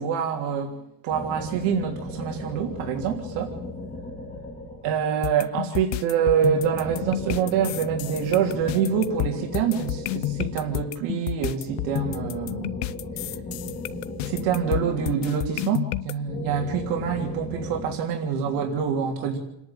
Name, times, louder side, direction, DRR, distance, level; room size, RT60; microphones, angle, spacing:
voice 1, 0.0-3.5 4.8-12.7 14.2-19.4, right 7 dB, 70° right, 3.3 m, -26 dB
sound 1, 1.1-5.3 6.4-11.0 11.6-15.7 16.3-17.9, left 2 dB, 15° left, 3.3 m, -36 dB
sound 2, 5.2-16.1, left 17 dB, 70° left, 0.8 m, -31 dB
29.0 x 11.0 x 9.0 m
cardioid pair, 175°, 43 cm